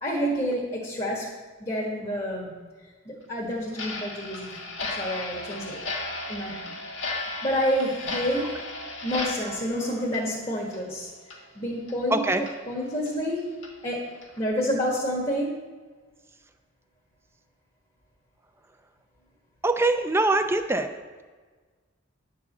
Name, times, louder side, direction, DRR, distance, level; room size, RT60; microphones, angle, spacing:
voice 1, 0.0-1.3 1.6-2.6 3.1-4.6 4.9-5.8 6.3-6.7 7.2-8.5 9.0-11.1 11.6-13.5 13.8-14.1 14.4-15.6, equal, 30° left, -4 dB, 1.6 m, -29 dB
Clock, 3.7-10.9 11.2-11.4 11.9-12.0 12.5-12.6 13.0-13.1 13.6-13.7 14.2-14.4, left 2 dB, 70° left, 1.7 m, -35 dB
voice 2, 12.1-12.4 19.6-20.9, right 2 dB, 10° right, 7 dB, 0.5 m, -23 dB
10.5 x 4.8 x 7.3 m, 1.4 s
head